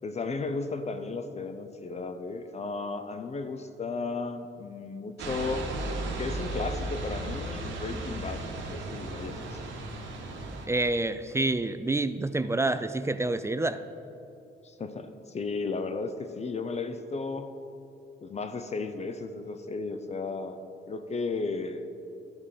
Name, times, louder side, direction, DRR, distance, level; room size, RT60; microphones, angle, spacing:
voice 1, 0.0-5.7 6.2-9.6 14.6-17.5 18.2-21.9, left 3 dB, 35° left, 8 dB, 0.6 m, -34 dB
sound 1, 5.2-10.7, right 2 dB, 75° right, 1.4 m, -35 dB
voice 2, 10.6-13.8, right 2 dB, 15° right, 12 dB, 0.3 m, -28 dB
12.0 x 4.9 x 5.5 m, 2.7 s
cardioid pair, 90°, 20 cm